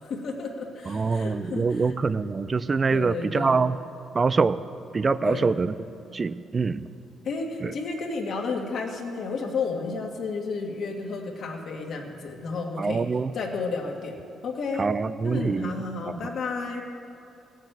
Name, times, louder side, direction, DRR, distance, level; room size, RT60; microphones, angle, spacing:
voice 1, 0.0-1.9 2.9-3.6 5.2-5.6 7.2-13.1 13.3-14.9 15.2-16.8, left 4 dB, 50° left, 1 dB, 1.9 m, -32 dB
voice 2, 0.9-3.8 4.1-4.6 4.9-5.7 6.1-6.9 7.6-7.7 12.8-13.3 14.8-15.7 16.1-16.3, right 4 dB, 25° right, 15 dB, 0.4 m, -25 dB
16.5 x 7.4 x 9.2 m, 2.5 s
cardioid pair, 160°, 0 cm